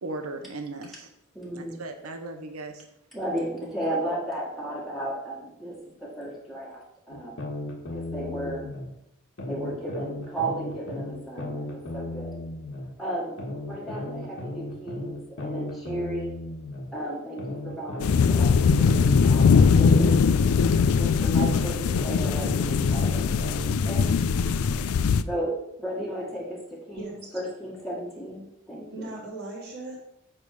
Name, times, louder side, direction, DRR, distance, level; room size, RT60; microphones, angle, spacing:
voice 1, 0.0-1.1 1.5-2.9, right 2 dB, 90° right, 6 dB, 1.0 m, -37 dB
voice 2, 1.3-1.8 3.1-7.5 7.9-8.7 9.5-12.4 13.0-13.4 13.7-16.3 16.9-20.2 21.0-23.3 23.8-24.1 25.3-29.1, right 1 dB, ahead, -5 dB, 1.7 m, -34 dB
sound 1, 7.1-8.9 9.4-12.9 13.4-16.9 17.4-20.9 21.4-24.9, left 1 dB, 65° left, 1.6 m, -35 dB
sound 2, 18.0-25.2, left 5 dB, 80° left, 0.4 m, -21 dB
voice 3, 26.9-27.4 28.9-30.1, right 2 dB, 50° right, -5 dB, 3.1 m, -38 dB
8.7 x 3.6 x 6.5 m, 0.79 s
head